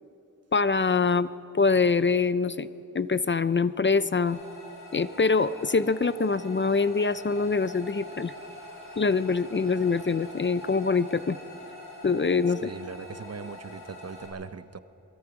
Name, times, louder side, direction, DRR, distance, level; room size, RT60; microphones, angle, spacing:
voice 1, 0.5-1.3 1.5-2.7 2.9-4.4 4.9-8.3 9.0-11.4 12.0-12.7, left 4 dB, 35° left, 15 dB, 0.5 m, -24 dB
sound 1, 4.3-14.3, left 1 dB, 60° left, 6.8 m, -44 dB
voice 2, 12.6-14.8, right 5 dB, 45° right, 13 dB, 0.8 m, -40 dB
27.0 x 21.0 x 4.9 m, 3.0 s
wide cardioid pair, 100°, 34 cm